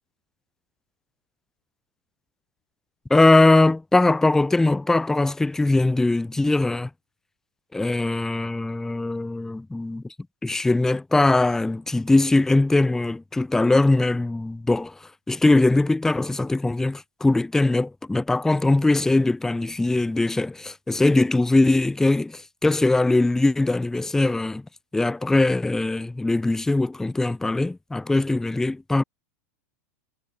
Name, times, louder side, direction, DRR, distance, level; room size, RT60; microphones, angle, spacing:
voice 1, 3.1-6.9 7.7-10.0 10.4-24.6 24.9-29.0, left 2 dB, 5° left, 0.4 m, -21 dB
hypercardioid pair, 110°, 8 cm